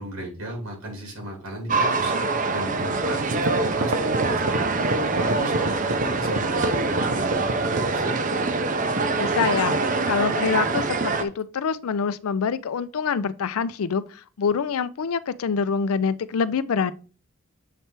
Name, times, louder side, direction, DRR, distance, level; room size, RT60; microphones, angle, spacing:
voice 1, 0.0-2.1 2.5-4.7 5.1-8.1, right 1 dB, 85° right, 2.7 m, -35 dB
sound 1, 1.7-11.2, right 3 dB, 35° right, 0.5 m, -24 dB
sound 2, 2.9-3.0 3.3-8.0, right 1 dB, 60° right, 0.9 m, -27 dB
voice 2, 9.2-16.9, left 6 dB, 90° left, 0.4 m, -26 dB
7.5 x 3.3 x 4.5 m
head